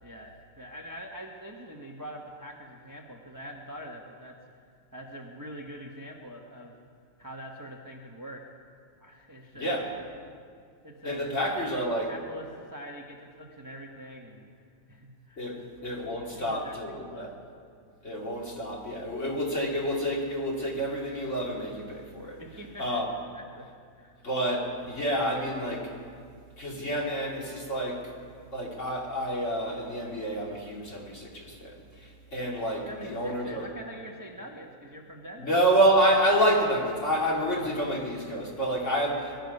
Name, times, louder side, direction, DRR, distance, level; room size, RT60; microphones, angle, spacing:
voice 1, 0.0-4.7 4.9-6.7 7.2-8.5 9.0-10.0 10.8-11.6 12.1-14.5 14.9-15.6 16.1-17.4 22.4-22.9 23.3-23.7 24.0-24.1 32.8-35.6, equal, 15° right, 0 dB, 0.8 m, -44 dB
voice 2, 9.5-9.9 11.0-12.1 15.4-17.3 18.0-22.4 22.8-23.1 24.2-25.9 26.6-28.1 28.5-33.7 35.4-39.4, right 1 dB, 40° left, -2 dB, 2.7 m, -28 dB
21.5 x 12.0 x 5.4 m, 2.2 s
omnidirectional pair, 2.1 m